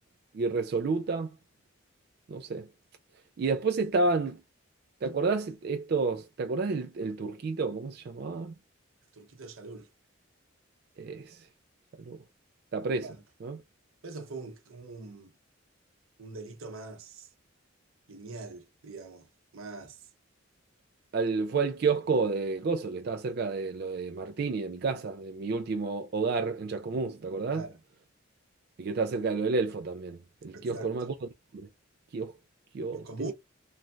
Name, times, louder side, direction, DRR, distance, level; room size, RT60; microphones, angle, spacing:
voice 1, 0.3-1.3 2.3-2.7 3.4-4.4 5.0-8.5 11.0-11.4 12.1-12.2 12.7-13.1 13.4-13.6 21.1-27.7 28.8-31.1 31.5-31.7 32.1-32.3 32.7-33.3, right 4 dB, 50° right, 0.3 m, -30 dB
voice 2, 9.1-9.9 13.0-13.2 14.0-15.3 16.2-17.3 18.1-19.3 19.5-20.0 27.5-27.8 30.5-30.9 32.9-33.3, right 3 dB, 80° right, 0.7 m, -42 dB
3.1 x 2.3 x 2.5 m
head